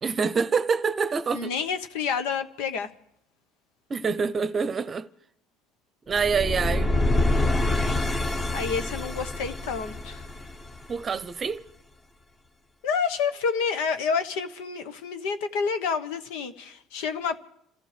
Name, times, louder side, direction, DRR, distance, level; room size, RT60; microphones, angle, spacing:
voice 1, 0.0-1.5 3.9-5.1 6.1-6.9 10.9-11.6, right 5 dB, 30° right, 0.7 m, -26 dB
voice 2, 1.3-2.9 8.5-10.2 12.8-17.4, left 6 dB, 85° left, 1.2 m, -29 dB
sound 1, 6.1-11.2, left 2 dB, 20° left, 1.2 m, -26 dB
28.5 x 14.5 x 3.4 m
cardioid pair, 115°, 0 cm